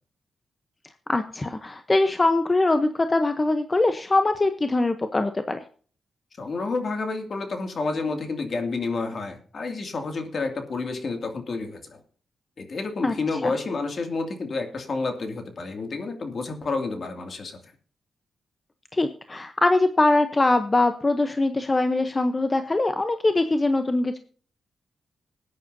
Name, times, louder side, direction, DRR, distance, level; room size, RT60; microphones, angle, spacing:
voice 1, 1.1-5.6 13.0-13.1 13.4-13.5 18.9-24.2, left 2 dB, 25° left, 8 dB, 0.9 m, -22 dB
voice 2, 6.4-12.0 12.6-17.6, left 3 dB, 50° left, 5 dB, 2.4 m, -30 dB
20.0 x 9.7 x 2.7 m, 0.44 s
cardioid pair, 90°, 0 cm